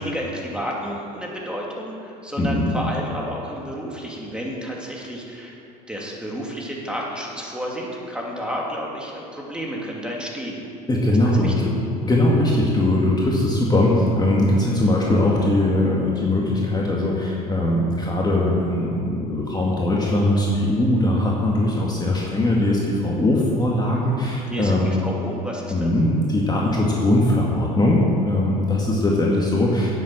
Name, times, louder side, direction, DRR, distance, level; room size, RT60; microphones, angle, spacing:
voice 1, 0.0-5.5 5.9-10.7 11.4-11.5 24.5-25.9, equal, 5° right, -3 dB, 2.6 m, -31 dB
voice 2, 2.4-2.8 10.9-11.7 12.0-24.9 25.7-29.9, left 1 dB, 20° left, -3 dB, 2.0 m, -20 dB
10.0 x 7.9 x 7.6 m, 2.7 s
hypercardioid pair, 75°, 21 cm